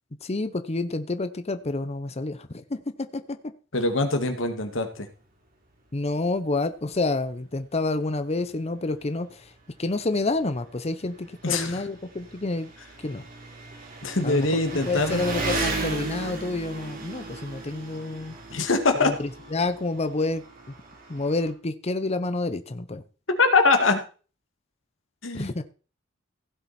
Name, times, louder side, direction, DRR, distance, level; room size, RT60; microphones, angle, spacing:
voice 1, 0.2-3.4 5.9-9.5 9.8-12.7 13.0-13.2 14.2-14.5 14.8-18.4 18.9-20.4 21.1-23.0 25.3-25.6, left 2 dB, 35° left, 11 dB, 0.7 m, -28 dB
voice 2, 3.7-5.1 11.4-11.8 14.0-15.2 18.5-19.1 23.4-24.0 25.2-25.6, left 3 dB, 85° left, 6 dB, 2.1 m, -23 dB
Engine, 6.9-7.0 7.4-7.5 8.5-8.6 8.8-21.5, right 2 dB, 50° right, 3.3 m, -36 dB
16.0 x 7.7 x 4.3 m, 0.38 s
head